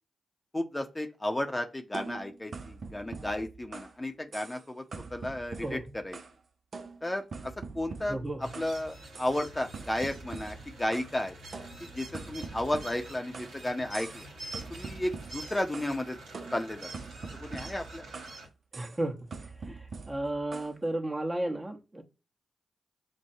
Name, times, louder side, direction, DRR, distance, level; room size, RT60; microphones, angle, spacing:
voice 1, 0.5-4.8 5.1-6.2 7.0-8.2 8.6-11.4 11.8-14.3 14.7-16.2 16.5-16.9 17.4-18.1, left 1 dB, 20° left, 0.7 m, -33 dB
sound 1, 1.9-4.0 4.3-4.6 4.9-6.4 6.7-8.8 9.1-9.4 9.7-11.2 11.5-13.6 13.9-14.3 14.5-16.0 16.3-18.4 18.7-19.0 19.3-20.7, right 4 dB, 60° right, 0.5 m, -44 dB
voice 2, 8.1-8.5 18.7-19.3 19.7-22.0, right 1 dB, 25° right, 0.9 m, -33 dB
sound 2, 8.4-18.5, right 2 dB, 85° right, 1.2 m, -46 dB
6.2 x 2.2 x 2.7 m
supercardioid pair, 40°, 0 cm